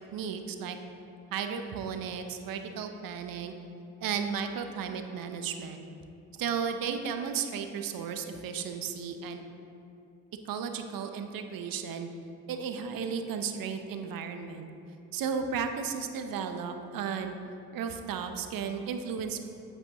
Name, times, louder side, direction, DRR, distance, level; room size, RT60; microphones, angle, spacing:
voice 1, 0.1-0.8 1.3-3.5 4.0-5.8 6.4-9.4 10.4-12.1 12.5-14.7 15.1-17.4 17.7-19.4, right 6 dB, 55° right, 7 dB, 0.8 m, -34 dB
8.0 x 7.8 x 3.0 m, 2.7 s
hypercardioid pair, 50°, 41 cm